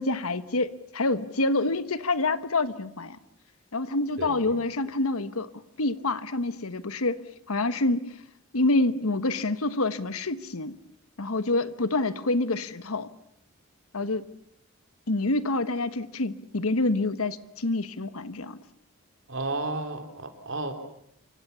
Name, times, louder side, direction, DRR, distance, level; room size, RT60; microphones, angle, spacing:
voice 1, 0.0-3.2 3.7-5.5 5.8-7.2 7.5-8.1 8.5-10.8 11.2-13.1 13.9-14.3 15.1-18.6, left 2 dB, 90° left, 13 dB, 1.3 m, -27 dB
voice 2, 4.2-4.6 19.3-20.7, right 2 dB, 60° right, 6 dB, 3.6 m, -33 dB
28.5 x 24.5 x 7.0 m, 0.74 s
head